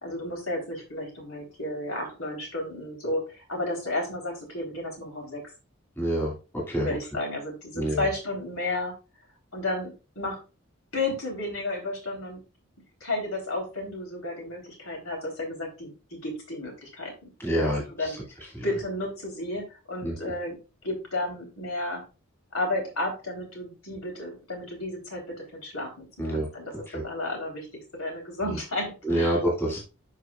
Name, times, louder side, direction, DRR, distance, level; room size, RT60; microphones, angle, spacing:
voice 1, 0.0-3.2 3.5-5.4 6.8-8.9 9.5-10.4 10.9-12.4 13.0-17.1 17.5-18.2 18.6-20.6 20.8-22.0 22.5-26.1 26.3-27.7 28.0-29.4, left 2 dB, 85° left, 1 dB, 3.7 m, -32 dB
voice 2, 6.0-6.3 6.7-7.0 7.7-8.1 17.4-18.1 18.5-18.7 20.0-20.2 26.2-26.5 26.9-27.0 29.0-29.8, right 1 dB, 10° left, -4 dB, 2.4 m, -27 dB
12.0 x 4.9 x 2.4 m, 0.30 s
head